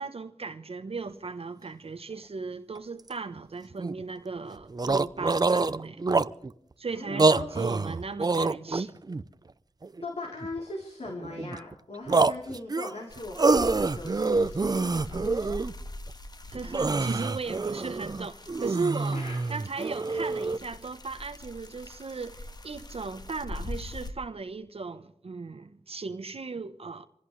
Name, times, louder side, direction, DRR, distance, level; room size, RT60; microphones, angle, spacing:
voice 1, 0.0-6.0 6.8-9.0 16.5-19.2 19.5-27.1, right 4 dB, 55° right, 0.9 m, -36 dB
sound 1, 2.8-2.9 3.1-3.2 3.7-4.0 4.4-4.5 4.7-6.5 7.1-9.2 9.8-10.6 11.1-11.7 12.1-15.7 16.1-16.2 16.5-20.6, right 3 dB, 35° right, 0.6 m, -26 dB
voice 2, 6.9-7.5 10.0-15.5 19.1-19.4, left 2 dB, 65° left, 3.4 m, -39 dB
sound 2, 13.1-24.1, left 1 dB, 35° left, 1.5 m, -43 dB
27.0 x 16.5 x 3.2 m
wide cardioid pair, 90°, 12 cm